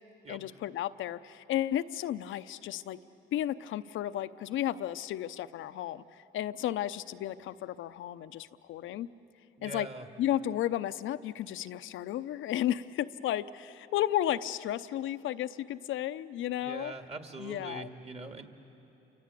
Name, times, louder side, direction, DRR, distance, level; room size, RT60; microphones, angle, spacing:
voice 1, 0.3-3.0 3.3-6.0 6.3-9.1 9.6-9.9 10.2-16.9 17.4-17.9, left 12 dB, 80° left, 13 dB, 0.7 m, -33 dB
voice 2, 9.6-10.1 16.6-18.5, right 3 dB, 30° right, 5 dB, 2.1 m, -42 dB
29.0 x 24.5 x 8.4 m, 2.9 s
cardioid pair, 90°, 20 cm